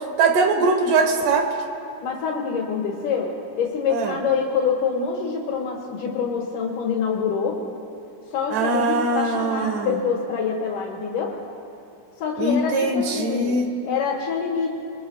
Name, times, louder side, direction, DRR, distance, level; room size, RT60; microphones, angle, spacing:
voice 1, 0.2-1.5 3.9-4.2 8.5-10.0 12.4-13.7, right 3 dB, 90° right, 4 dB, 3.0 m, -21 dB
voice 2, 2.0-7.6 8.3-11.4 12.2-13.6 13.8-14.7, left 6 dB, 85° left, -3 dB, 3.3 m, -26 dB
27.5 x 22.0 x 2.4 m, 2.8 s
omnidirectional pair, 3.6 m